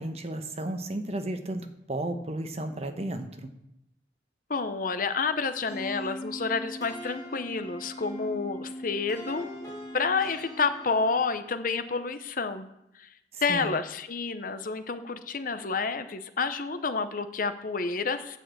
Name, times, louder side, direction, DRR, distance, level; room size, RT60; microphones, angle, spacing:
voice 1, 0.0-3.5 13.3-13.7, right 1 dB, 35° right, 7 dB, 0.9 m, -33 dB
voice 2, 4.5-12.7 13.0-13.1 13.4-18.4, left 4 dB, 50° left, 10 dB, 0.8 m, -29 dB
sound 1, 5.7-11.5, equal, 20° left, 4.4 m, -40 dB
9.5 x 6.3 x 7.8 m, 0.83 s
head